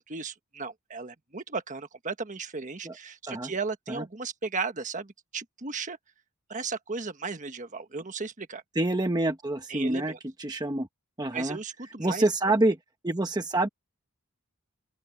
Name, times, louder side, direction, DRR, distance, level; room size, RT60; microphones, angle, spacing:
voice 1, 0.0-6.0 6.5-8.6 9.7-10.2 11.3-12.2, right 4 dB, 35° right, 1.4 m, -35 dB
voice 2, 8.7-10.1 10.4-10.9 11.2-11.6 12.0-12.8 13.0-13.7, right 2 dB, 20° right, 1.1 m, -26 dB
open air
head